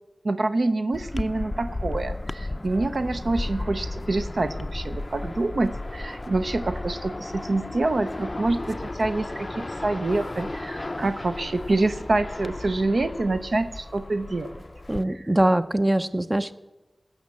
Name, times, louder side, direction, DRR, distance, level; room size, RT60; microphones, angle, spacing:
voice 1, 0.2-14.5 15.1-15.3, right 2 dB, 70° right, 9 dB, 0.6 m, -26 dB
sound 1, 0.9-15.0, left 2 dB, 35° left, 0.4 m, -34 dB
voice 2, 14.9-16.5, right 1 dB, 20° right, 9 dB, 0.5 m, -22 dB
17.0 x 6.5 x 7.4 m, 1.1 s
wide cardioid pair, 65°, 0 cm